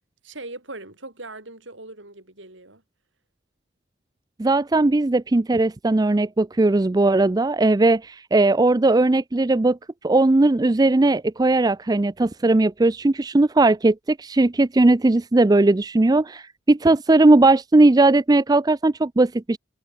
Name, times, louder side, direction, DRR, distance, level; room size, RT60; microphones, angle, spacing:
voice 1, 0.2-2.8, right 2 dB, 70° right, 6.9 m, -40 dB
voice 2, 4.4-9.8 10.0-19.6, right 2 dB, 20° right, 0.4 m, -18 dB
head